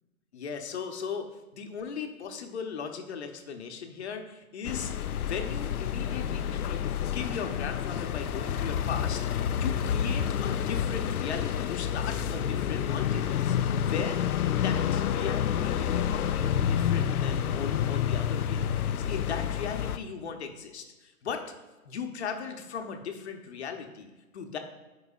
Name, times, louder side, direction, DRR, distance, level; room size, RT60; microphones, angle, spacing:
voice 1, 0.3-14.2 14.6-21.4 21.8-24.6, left 6 dB, 50° left, 5 dB, 0.9 m, -38 dB
sound 1, 4.6-20.0, left 9 dB, 80° left, 0.5 m, -29 dB
12.0 x 4.7 x 2.4 m, 1.2 s
hypercardioid pair, 145°, 43 cm